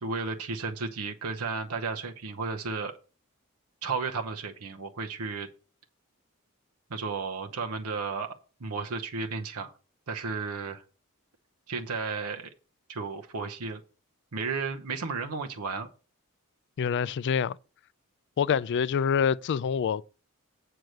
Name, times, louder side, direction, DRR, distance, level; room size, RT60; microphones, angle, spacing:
voice 1, 0.0-2.9 3.8-5.5 6.9-8.3 8.6-9.7 10.1-10.8 11.7-12.5 12.9-13.8 14.3-15.9, right 4 dB, 80° right, 0.9 m, -33 dB
voice 2, 16.8-17.6 18.4-20.1, left 7 dB, 55° left, 0.3 m, -26 dB
7.8 x 4.7 x 6.6 m
head